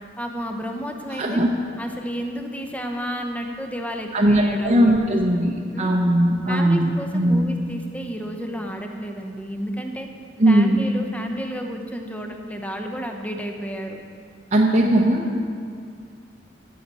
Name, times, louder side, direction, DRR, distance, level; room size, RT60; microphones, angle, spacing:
voice 1, 0.2-1.4 1.8-5.4 5.7-5.9 6.5-10.1 10.5-14.0, equal, 10° left, 3 dB, 0.8 m, -31 dB
voice 2, 1.1-1.5 4.1-5.5 5.8-7.4 10.4-10.8 14.5-15.4, right 1 dB, 35° right, -2 dB, 0.7 m, -19 dB
14.0 x 7.5 x 4.1 m, 2.2 s
head